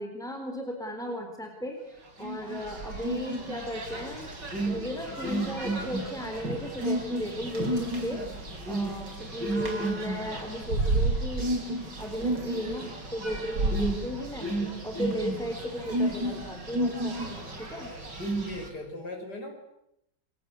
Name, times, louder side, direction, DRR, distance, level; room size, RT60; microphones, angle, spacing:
voice 1, 0.0-4.3 4.7-8.2 8.7-14.5 14.8-17.9, left 1 dB, ahead, 4 dB, 3.9 m, -36 dB
sound 1, 2.2-18.7, right 2 dB, 80° right, 5.3 m, -31 dB
voice 2, 18.5-19.5, left 2 dB, 65° left, 3 dB, 5.9 m, -38 dB
29.0 x 23.5 x 8.3 m, 0.80 s
omnidirectional pair, 1.9 m